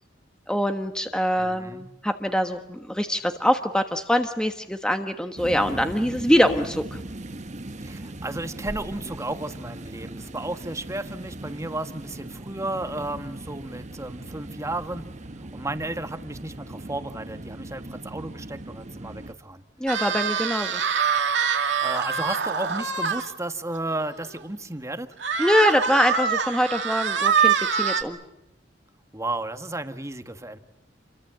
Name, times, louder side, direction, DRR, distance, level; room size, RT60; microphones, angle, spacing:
voice 1, 0.5-7.0 19.8-20.8 25.4-28.2, equal, 5° left, 6 dB, 1.3 m, -24 dB
voice 2, 1.4-1.8 7.8-15.1 15.4-19.6 21.8-25.1 29.1-30.6, right 2 dB, 15° right, 8 dB, 1.5 m, -33 dB
sound 1, 5.4-19.3, right 1 dB, 40° right, 1.1 m, -39 dB
sound 2, 19.9-23.3 23.7-23.8 24.2-24.3 25.2-28.0, right 6 dB, 75° right, 2.3 m, -24 dB
29.0 x 23.5 x 7.7 m, 0.90 s
head